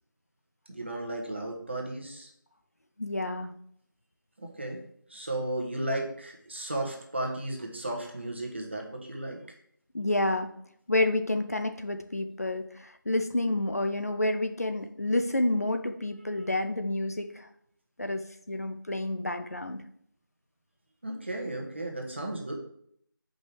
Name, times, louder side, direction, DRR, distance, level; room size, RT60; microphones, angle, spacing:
voice 1, 0.7-2.3 4.4-4.8 5.1-9.4 21.0-22.5, right 1 dB, 30° right, 1 dB, 1.2 m, -34 dB
voice 2, 3.0-3.5 9.9-10.5 10.9-17.5 18.0-18.2 18.5-19.8, left 2 dB, 45° left, 7 dB, 0.5 m, -29 dB
7.6 x 5.2 x 3.4 m, 0.67 s
figure-of-eight pair, 175°, 11 cm